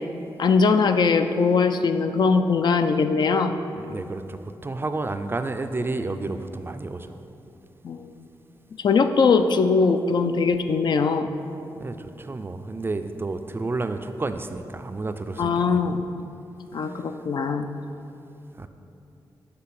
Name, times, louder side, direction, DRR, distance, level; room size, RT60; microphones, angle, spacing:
voice 1, 0.4-3.5 7.8-8.1 8.8-11.3 15.4-16.0 16.7-17.7, left 4 dB, 60° left, 8 dB, 0.4 m, -21 dB
voice 2, 3.8-7.2 11.8-15.9 16.9-17.0 18.6-18.7, right 3 dB, 25° right, 8 dB, 0.3 m, -31 dB
7.6 x 3.2 x 5.9 m, 2.7 s
cardioid pair, 70°, 8 cm